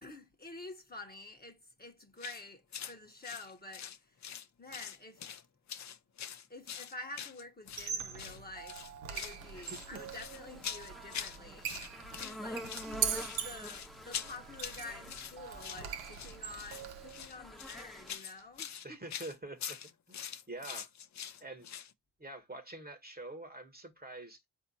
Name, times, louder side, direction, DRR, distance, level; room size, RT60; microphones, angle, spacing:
voice 1, 0.0-3.9 4.6-5.3 6.5-8.7 9.1-11.7 12.2-19.0, left 2 dB, 20° left, 1.1 m, -49 dB
sound 1, 2.2-2.4 2.7-2.9 3.2-4.5 4.7-5.4 5.7-7.9 8.2-8.4 8.7-9.4 9.6-11.4 11.6-12.4 12.6-21.9, left 8 dB, 40° left, 0.6 m, -44 dB
Squeak, 7.7-17.3, right 8 dB, 80° right, 0.8 m, -42 dB
sound 2, 9.4-18.1, equal, ahead, 0.9 m, -48 dB
voice 2, 9.5-10.0 18.8-19.8 20.1-20.2 20.5-20.9 21.4-21.7 22.2-24.4, right 2 dB, 20° right, 1.1 m, -46 dB
4.2 x 2.8 x 4.1 m
supercardioid pair, 50°, 45 cm